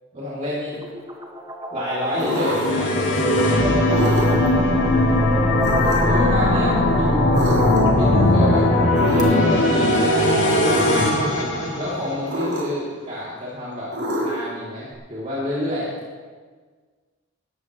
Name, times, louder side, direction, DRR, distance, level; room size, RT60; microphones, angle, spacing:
voice 1, 0.1-0.8 1.7-3.9 6.0-7.4 7.9-8.7 9.1-10.0 10.4-10.7 11.8-13.9 14.2-15.9, left 1 dB, 35° right, -8 dB, 3.0 m, -29 dB
sound 1, 0.7-9.2, right 1 dB, 20° right, 1.6 m, -30 dB
sound 2, 2.1-12.4, left 1 dB, 55° left, 3.1 m, -19 dB
sound 3, 2.2-2.8 3.8-4.5 5.6-6.2 7.3-8.0 8.9-9.6 10.6-11.0 12.3-12.9 13.9-14.6, equal, 80° right, 4.8 m, -26 dB
19.0 x 14.0 x 3.2 m, 1.5 s
head